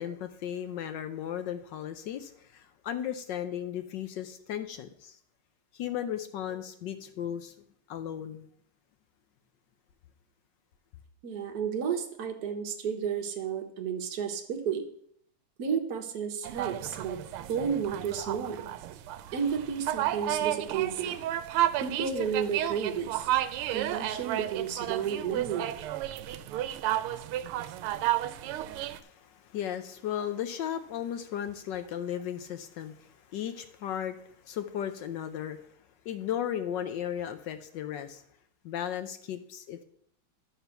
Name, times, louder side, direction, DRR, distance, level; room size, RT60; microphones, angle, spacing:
voice 1, 0.0-5.2 5.7-7.5 7.9-8.5 28.7-35.7 36.0-38.2 38.6-39.8, left 10 dB, 70° left, 9 dB, 1.1 m, -36 dB
voice 2, 11.2-14.8 15.6-17.2 17.5-18.7 19.3-21.2 21.8-23.3 23.7-25.7, right 7 dB, 55° right, 3 dB, 1.3 m, -32 dB
sound 1, 16.4-29.0, right 13 dB, 85° right, 1.5 m, -32 dB
12.0 x 4.4 x 6.8 m, 0.68 s
omnidirectional pair, 2.3 m